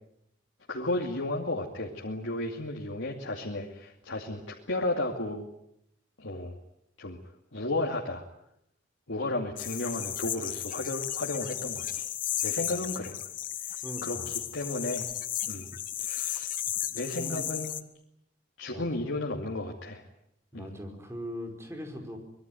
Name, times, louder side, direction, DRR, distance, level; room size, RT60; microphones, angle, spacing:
voice 1, 0.7-5.5 6.2-6.5 7.0-7.2 7.5-8.2 9.1-12.1 12.4-13.2 14.0-14.2 14.5-15.1 15.5-15.7 16.0-16.5 16.9-17.7 18.6-20.0 20.5-20.7, left 2 dB, 90° left, 0 dB, 2.7 m, -33 dB
sound 1, 9.6-17.8, left 12 dB, 45° left, 1.3 m, -34 dB
voice 2, 13.8-14.3 17.1-17.5 18.7-18.9 20.5-22.2, equal, 15° right, 3 dB, 5.2 m, -40 dB
25.5 x 21.0 x 9.4 m, 0.78 s
head